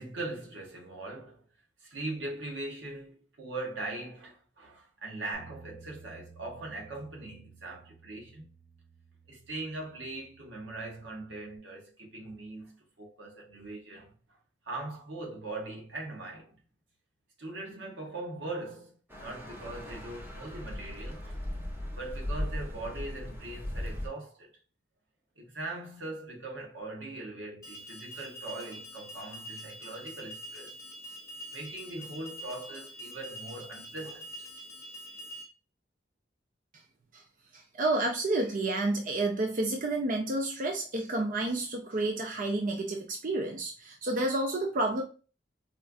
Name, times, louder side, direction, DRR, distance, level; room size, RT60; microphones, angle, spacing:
voice 1, 0.0-1.4 1.8-8.5 9.3-14.4 14.6-16.6 17.4-21.4 21.9-24.5 25.4-30.8 31.5-34.5, right 2 dB, 90° right, 1.3 m, -41 dB
Bass guitar, 5.3-11.6, right 5 dB, 65° right, 1.0 m, -55 dB
sound 1, 19.1-24.1, left 1 dB, 10° right, 0.8 m, -38 dB
Alarm, 27.6-35.4, equal, 20° left, 0.9 m, -45 dB
voice 2, 37.5-45.0, right 2 dB, 50° right, 0.6 m, -30 dB
4.3 x 2.5 x 2.3 m
head